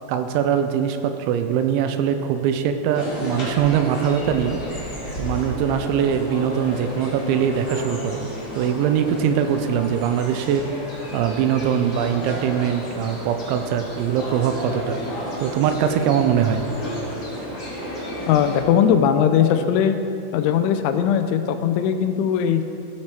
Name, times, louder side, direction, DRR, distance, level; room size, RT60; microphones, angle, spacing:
voice 1, 0.1-4.9 5.2-8.3 8.6-10.7 11.1-15.0 15.4-16.6, right 8 dB, 85° right, 7 dB, 2.9 m, -22 dB
sound 1, 2.9-18.6, equal, 60° left, 0.8 m, -32 dB
voice 2, 18.3-20.0 20.3-22.6, left 8 dB, 85° left, 8 dB, 2.9 m, -19 dB
15.5 x 6.4 x 4.3 m, 2.7 s
omnidirectional pair, 5.5 m